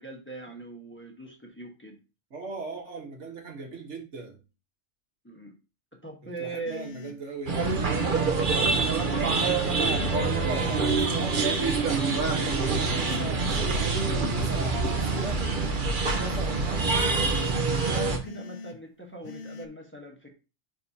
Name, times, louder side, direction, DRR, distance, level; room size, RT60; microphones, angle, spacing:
voice 1, 0.0-2.0 5.2-5.5 5.9-6.8 9.1-10.9 17.8-20.3, right 2 dB, 10° left, 1.1 m, -40 dB
voice 2, 2.3-4.4 6.2-7.7 10.1-15.5 16.0-17.7, right 4 dB, 80° right, 1.7 m, -39 dB
sound 1, 6.7-7.2 7.6-8.2 8.7-9.3 9.8-10.3 10.8-11.4 11.9-12.4 12.9-13.5 14.0-14.5 15.1-15.6 16.1-16.6 17.1-17.7 18.2-18.8 19.2-19.7, left 3 dB, 80° left, 1.0 m, -42 dB
sound 2, 7.5-18.2, right 4 dB, 45° right, 1.0 m, -26 dB
9.6 x 3.6 x 2.8 m
omnidirectional pair, 1.2 m